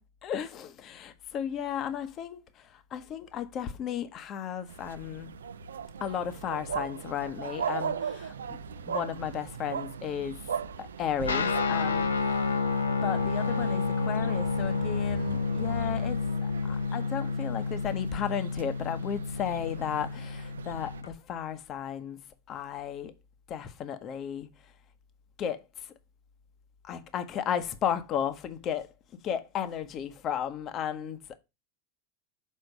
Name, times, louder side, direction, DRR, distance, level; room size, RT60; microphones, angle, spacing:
voice 1, 0.2-2.4 2.9-5.3 6.0-8.3 8.9-10.4 10.8-12.1 13.0-16.2 16.6-22.2 22.5-23.1 23.5-24.5 25.4-25.6 26.8-28.9 29.2-31.4, left 8 dB, 40° left, 0.9 m, -34 dB
sound 1, 4.7-21.0, right 6 dB, 85° right, 0.4 m, -39 dB
Guitar, 11.2-21.1, left 4 dB, 90° left, 0.8 m, -30 dB
6.5 x 4.4 x 5.1 m
hypercardioid pair, 95°, 0 cm